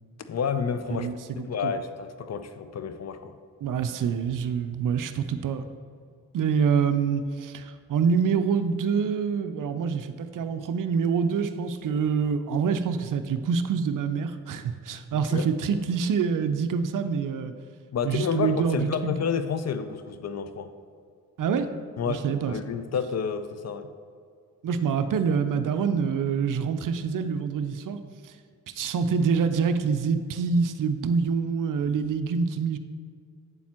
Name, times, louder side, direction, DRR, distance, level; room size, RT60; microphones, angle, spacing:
voice 1, 0.2-1.1 1.4-3.4 15.1-15.5 17.9-20.7 22.0-23.9, left 6 dB, 40° left, 10 dB, 0.6 m, -30 dB
voice 2, 0.9-1.7 3.6-5.6 6.3-17.5 18.0-19.1 21.4-21.7 22.1-22.6 24.6-28.0 28.2-28.3 28.7-32.8, right 6 dB, 50° right, 10 dB, 0.6 m, -26 dB
8.3 x 7.1 x 2.9 m, 2.3 s
hypercardioid pair, 40°, 42 cm